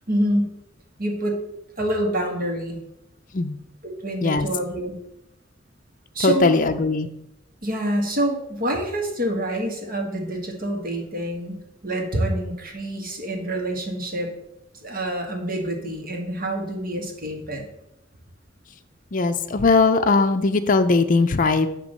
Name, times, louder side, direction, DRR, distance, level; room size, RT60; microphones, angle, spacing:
voice 1, 0.1-0.5 1.0-1.4 1.8-2.8 3.8-4.9 6.1-6.6 7.6-14.3 14.8-17.6, right 1 dB, 50° right, 1 dB, 1.6 m, -26 dB
voice 2, 6.2-7.1 19.1-21.7, left 3 dB, 45° left, 7 dB, 0.6 m, -19 dB
8.9 x 3.0 x 6.4 m, 0.83 s
head